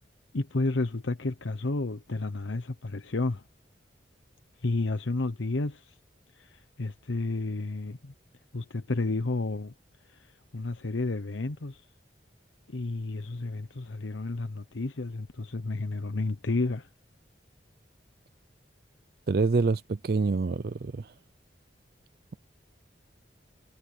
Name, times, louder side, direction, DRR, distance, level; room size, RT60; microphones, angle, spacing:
voice 1, 0.3-3.4 4.6-5.9 6.3-8.1 8.5-9.7 10.0-11.8 12.7-16.9, left 2 dB, 90° left, 0.9 m, -31 dB
voice 2, 19.3-21.1, right 4 dB, 55° right, 0.4 m, -26 dB
head